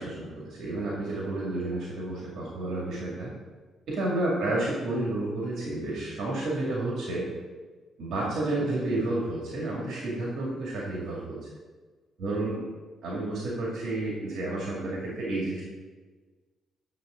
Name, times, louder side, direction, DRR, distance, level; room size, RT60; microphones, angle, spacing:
voice 1, 0.0-3.3 3.9-7.3 8.0-11.5 12.2-12.6 13.0-15.6, right 2 dB, 70° right, -4 dB, 2.2 m, -31 dB
9.3 x 7.1 x 3.8 m, 1.4 s
cardioid pair, 90°, 0 cm